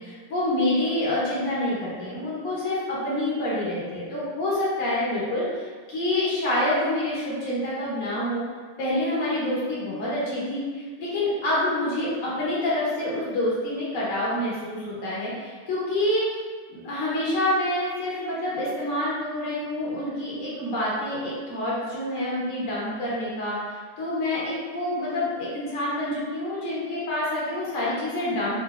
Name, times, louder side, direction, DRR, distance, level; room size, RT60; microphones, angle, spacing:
voice 1, 0.0-8.4 8.8-16.2 16.7-23.6 24.0-28.6, left 1 dB, 50° left, -8 dB, 1.2 m, -27 dB
4.0 x 2.6 x 2.4 m, 1.5 s
omnidirectional pair, 2.2 m